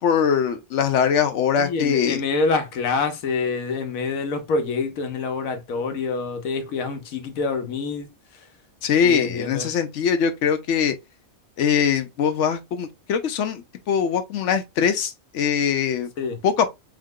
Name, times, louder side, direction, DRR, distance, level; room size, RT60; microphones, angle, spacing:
voice 1, 0.0-2.2 8.8-10.9 11.6-16.1 16.4-16.7, left 7 dB, 65° left, 0.9 m, -22 dB
voice 2, 1.6-8.1 9.0-9.7 16.2-16.4, left 4 dB, 85° left, 1.2 m, -26 dB
3.6 x 2.0 x 3.6 m
omnidirectional pair, 1.4 m